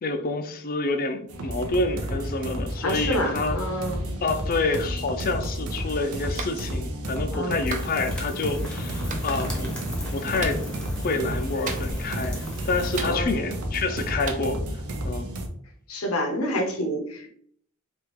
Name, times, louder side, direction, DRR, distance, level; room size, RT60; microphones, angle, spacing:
voice 1, 0.0-3.6 4.2-9.7 10.1-10.6 11.0-12.4 12.7-14.6 15.0-15.3, left 3 dB, 40° left, 7 dB, 0.4 m, -28 dB
sound 1, 1.3-15.5, equal, 90° right, 0.6 m, -31 dB
voice 2, 2.8-4.1 7.3-7.6 13.0-13.3 15.9-17.3, equal, 75° left, 2 dB, 0.8 m, -28 dB
Clapping, 6.4-6.6 7.7-7.9 9.1-9.2 10.4-10.6 11.7-12.1 13.0-13.5 14.3-14.4, right 4 dB, 35° right, 0.4 m, -34 dB
sound 2, 7.6-13.0, equal, 5° left, 0.7 m, -36 dB
3.5 x 2.4 x 3.0 m, 0.64 s
head